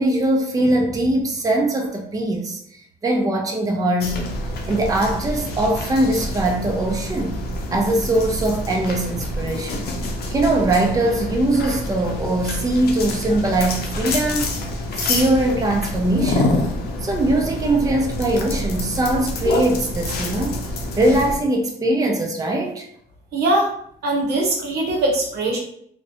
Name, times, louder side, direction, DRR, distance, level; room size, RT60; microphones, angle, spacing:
voice 1, 0.0-4.3 4.7-7.4 7.7-9.9 10.3-14.6 14.9-16.6 17.0-20.6 21.0-22.9, right 1 dB, 20° right, 1 dB, 0.5 m, -21 dB
sound 1, 4.0-21.4, left 1 dB, 75° left, 0.5 m, -27 dB
voice 2, 23.3-23.7 24.0-25.6, right 2 dB, 75° right, 0 dB, 0.8 m, -21 dB
2.4 x 2.1 x 2.6 m, 0.67 s
cardioid pair, 80°, 17 cm